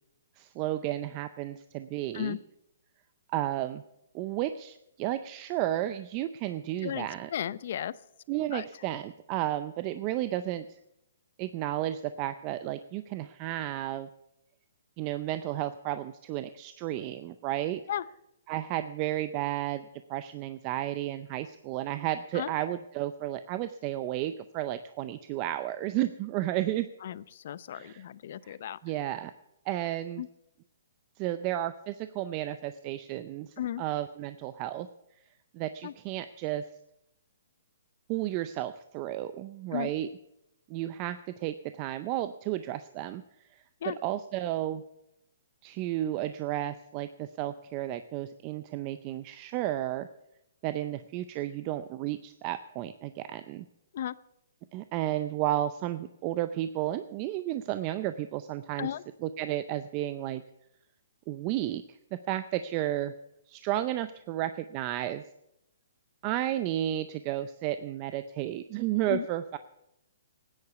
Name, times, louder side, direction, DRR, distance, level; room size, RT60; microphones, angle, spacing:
voice 1, 0.4-2.4 3.3-3.8 4.1-7.3 8.3-10.7 11.4-14.1 15.0-17.8 18.5-26.9 27.7-28.0 28.4-28.6 28.8-29.3 29.7-30.2 31.2-34.9 35.5-36.6 38.1-40.1 40.7-43.2 43.5-44.8 45.6-50.1 50.6-53.7 54.7-58.9 59.2-60.4 61.3-63.1 63.5-65.2 66.2-69.6, right 13 dB, 30° right, 12 dB, 0.5 m, -32 dB
voice 2, 6.8-8.0 8.5-8.6 17.9-18.1 22.3-22.5 27.0-28.8 30.2-30.3 33.6-33.8 35.8-35.9 39.7-39.9 43.8-44.0 53.9-54.2 58.8-59.0 69.1-69.3, left 10 dB, 55° left, 18 dB, 0.6 m, -35 dB
13.5 x 9.8 x 8.0 m, 0.83 s
hypercardioid pair, 155°, 0 cm